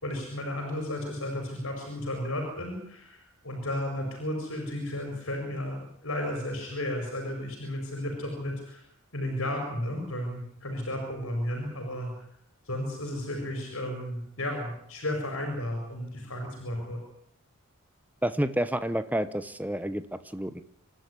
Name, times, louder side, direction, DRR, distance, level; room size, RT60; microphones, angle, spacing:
voice 1, 0.0-8.8 9.1-12.2 12.6-17.0, left 1 dB, 70° left, 2 dB, 5.3 m, -33 dB
voice 2, 18.2-20.6, right 1 dB, 5° right, 13 dB, 0.9 m, -29 dB
26.0 x 12.0 x 9.9 m, 0.73 s
head